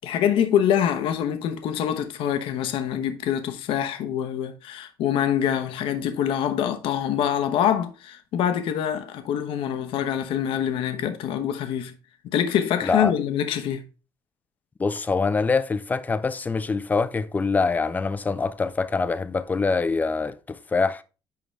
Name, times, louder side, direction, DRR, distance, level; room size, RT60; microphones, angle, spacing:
voice 1, 0.0-11.9 12.3-13.8, left 9 dB, 75° left, 1.1 m, -25 dB
voice 2, 12.8-13.1 14.8-21.0, left 4 dB, 20° left, 0.5 m, -24 dB
11.0 x 3.9 x 3.3 m
cardioid pair, 155°, 9 cm